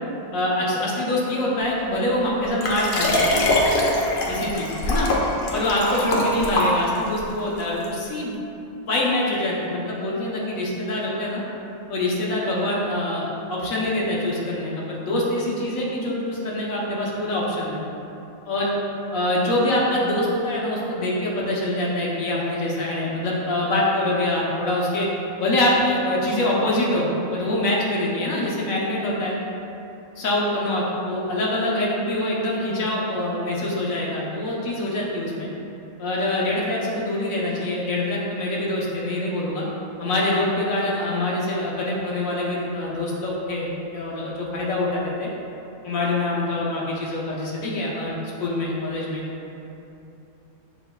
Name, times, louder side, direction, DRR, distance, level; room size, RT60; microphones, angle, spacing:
voice 1, 0.3-3.2 4.3-5.1 5.5-8.4 8.9-11.4 11.9-17.8 18.5-18.7 19.1-25.1 25.4-29.3 30.2-35.5 36.0-39.6 40.0-45.3 45.8-48.1 48.4-49.2, left 1 dB, 75° left, -5 dB, 1.2 m, -24 dB
Liquid, 2.6-7.2 7.8-7.9, left 1 dB, 60° left, 0.6 m, -23 dB
6.9 x 3.2 x 2.2 m, 2.8 s
omnidirectional pair, 1.4 m